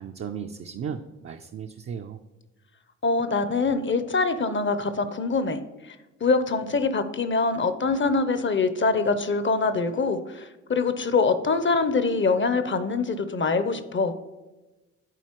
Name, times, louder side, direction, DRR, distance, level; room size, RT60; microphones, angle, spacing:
voice 1, 0.0-2.2, right 7 dB, 40° right, 4 dB, 0.5 m, -35 dB
voice 2, 3.0-5.6 6.2-14.1, left 4 dB, 30° left, 11 dB, 0.7 m, -24 dB
10.5 x 4.2 x 3.0 m, 1.1 s
hypercardioid pair, 45°, 37 cm